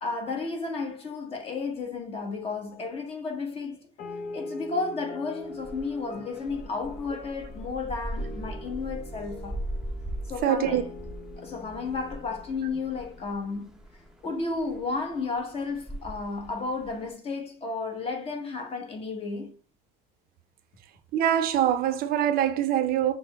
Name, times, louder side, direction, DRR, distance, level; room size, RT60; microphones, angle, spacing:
voice 1, 0.0-3.9 4.3-9.6 10.2-10.8 11.4-13.8 14.2-19.6, left 4 dB, 35° left, 1.1 m, -33 dB
sound 1, 4.0-13.7, left 2 dB, 50° left, 0.8 m, -43 dB
sound 2, 5.4-17.1, right 1 dB, 5° right, 0.6 m, -40 dB
voice 2, 10.4-10.8 21.1-23.1, right 10 dB, 60° right, 0.6 m, -24 dB
5.9 x 2.1 x 3.3 m
cardioid pair, 125°, 18 cm